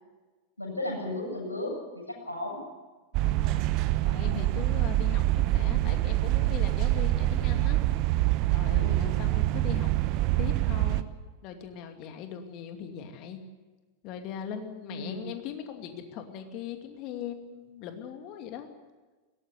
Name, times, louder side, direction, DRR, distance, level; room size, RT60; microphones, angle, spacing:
voice 1, 0.6-2.6 8.7-9.2 14.9-15.3, left 1 dB, 80° left, 0 dB, 7.7 m, -35 dB
sound 1, 3.1-11.0, right 16 dB, 40° right, 0.9 m, -25 dB
voice 2, 3.2-3.6 4.0-7.8 8.5-9.9 10.4-11.1 11.4-13.4 14.0-18.7, left 8 dB, 40° left, 6 dB, 2.5 m, -40 dB
21.5 x 18.0 x 8.5 m, 1.3 s
figure-of-eight pair, 90°, 0 cm